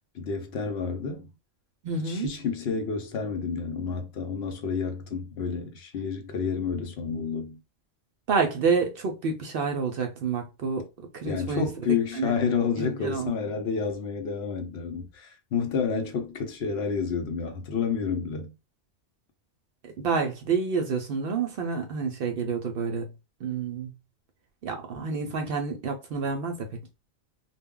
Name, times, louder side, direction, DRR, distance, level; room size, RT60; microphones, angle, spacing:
voice 1, 0.1-1.3 2.0-7.6 11.2-18.5, left 5 dB, 65° left, 0.8 m, -30 dB
voice 2, 1.8-2.3 8.3-10.8 11.1-11.7 12.1-12.3 12.8-13.3 20.0-23.1 23.4-23.9 24.6-26.7, right 5 dB, 60° right, 0.6 m, -28 dB
2.2 x 2.1 x 3.6 m
omnidirectional pair, 1.2 m